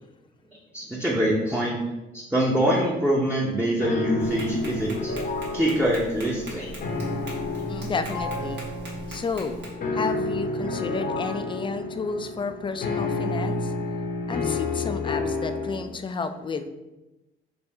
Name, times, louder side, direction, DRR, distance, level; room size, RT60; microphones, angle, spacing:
voice 1, 0.7-1.8 2.1-5.1 5.5-6.7, equal, 5° right, -4 dB, 0.7 m, -24 dB
sound 1, 3.8-15.8, left 2 dB, 50° left, 0.7 m, -30 dB
Tap, 4.2-9.7, right 1 dB, 65° right, 1.5 m, -42 dB
voice 2, 7.7-8.7 9.1-9.7 9.9-13.7 14.3-16.7, left 4 dB, 25° left, 9 dB, 0.3 m, -31 dB
3.6 x 2.6 x 4.2 m, 1.0 s
cardioid pair, 90°, 20 cm